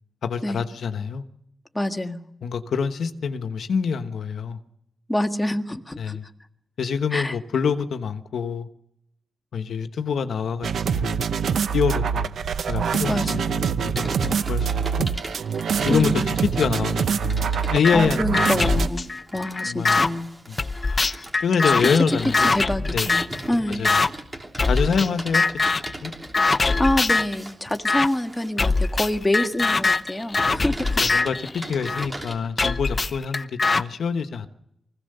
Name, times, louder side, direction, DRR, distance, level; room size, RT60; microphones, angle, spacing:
voice 1, 0.2-1.2 2.4-4.6 6.0-6.3 6.8-8.7 9.5-10.7 10.9-11.3 11.7-12.3 12.7-14.7 15.0-15.1 15.8-18.5 19.6-20.0 20.5-20.6 21.4-22.6 22.8-23.1 23.7-24.0 24.7-25.5 26.0-26.1 31.0-34.5, left 6 dB, 80° left, 8 dB, 1.1 m, -26 dB
voice 2, 1.7-2.2 5.1-6.2 7.1-7.3 13.1-13.5 15.9-16.4 17.9-20.3 21.8-21.9 22.4-23.8 26.8-31.0, left 1 dB, 10° left, 4 dB, 1.7 m, -26 dB
sound 1, 10.6-18.9, right 6 dB, 80° right, 0.8 m, -25 dB
Computer keyboard, 13.9-32.3, right 1 dB, 20° right, 3.3 m, -38 dB
sound 2, 17.8-18.0 18.3-20.1 20.6-23.4 23.8-24.1 24.6-25.1 25.3-25.9 26.3-27.3 27.8-28.1 28.6-32.1 32.6-33.8, left 3 dB, 35° left, 0.7 m, -22 dB
24.0 x 16.5 x 6.7 m, 0.80 s
wide cardioid pair, 140°, 0 cm